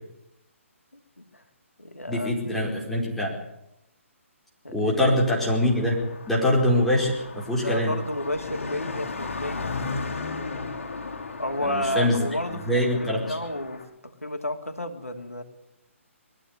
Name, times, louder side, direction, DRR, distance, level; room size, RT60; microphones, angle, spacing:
voice 1, 0.9-1.4 1.8-2.8 4.6-4.9 7.6-9.7 11.4-12.7 13.0-15.4, left 1 dB, 90° left, 4 dB, 3.1 m, -32 dB
voice 2, 2.1-3.3 4.7-6.0 6.3-7.9 11.6-13.4, left 1 dB, 5° left, -4 dB, 4.7 m, -24 dB
Car passing by, 5.3-13.8, left 4 dB, 65° left, 5.5 m, -36 dB
21.5 x 15.0 x 9.7 m, 0.86 s
figure-of-eight pair, 135°, 8 cm